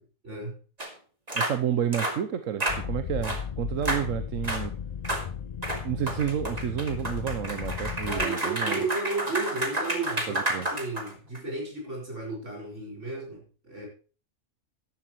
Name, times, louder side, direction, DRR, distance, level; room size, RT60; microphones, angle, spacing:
voice 1, 0.2-0.6 8.1-13.9, right 3 dB, 65° right, 0 dB, 5.7 m, -34 dB
sound 1, 0.8-0.9 1.3-1.6 1.9-2.2 2.6-2.8 3.2-3.4 3.8-4.1 4.4-4.6 5.0-5.3 5.6-11.4, right 1 dB, 30° right, 2.3 m, -30 dB
voice 2, 1.3-4.7 5.8-8.8 10.3-10.7, right 9 dB, 85° right, 10 dB, 1.2 m, -30 dB
sound 2, 2.7-8.3, left 7 dB, 50° left, 0.5 m, -35 dB
13.5 x 11.5 x 3.0 m, 0.36 s
omnidirectional pair, 1.3 m